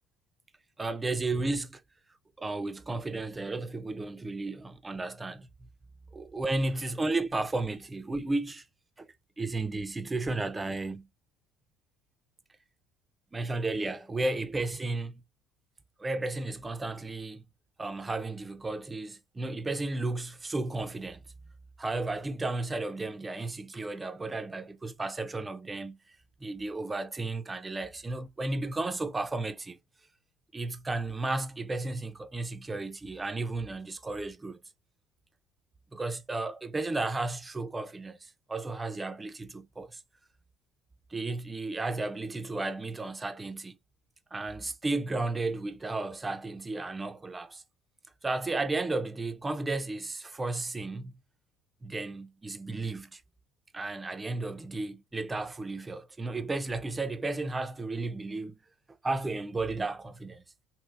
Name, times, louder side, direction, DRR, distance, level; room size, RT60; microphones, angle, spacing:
voice 1, 0.8-1.8 2.4-5.7 6.1-8.6 9.0-9.1 9.4-11.1 13.3-15.2 16.0-17.4 17.8-21.2 21.8-26.0 26.4-29.8 30.5-34.6 35.9-40.0 41.1-43.8 44.3-47.6 48.2-51.1 51.8-53.2 53.7-58.5 59.0-60.4, right 2 dB, 20° right, 0.6 m, -33 dB
3.2 x 3.0 x 2.4 m
hypercardioid pair, 65°, 0 cm